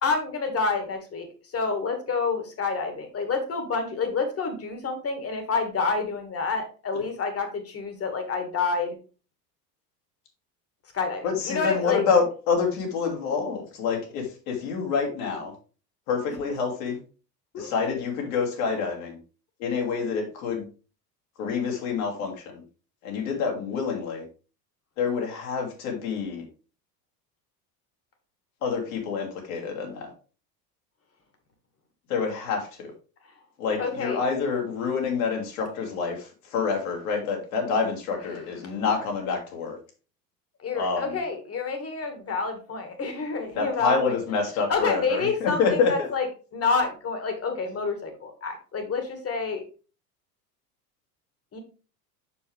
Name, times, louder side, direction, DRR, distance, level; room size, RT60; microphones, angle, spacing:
voice 1, 0.0-9.0 10.9-12.0 17.5-17.7 33.8-34.2 40.6-44.0 44.7-46.3 46.5-49.6 51.5-51.6, left 4 dB, 30° left, 6 dB, 2.1 m, -28 dB
voice 2, 11.2-15.5 16.1-17.0 17.6-19.2 19.6-20.7 21.4-22.6 23.0-24.2 25.0-26.5 28.6-30.1 32.1-32.9 33.6-39.8 40.7-41.1 43.5-46.1, left 5 dB, 60° left, 1 dB, 2.7 m, -27 dB
7.0 x 6.5 x 3.4 m, 0.36 s
figure-of-eight pair, 75°, 48 cm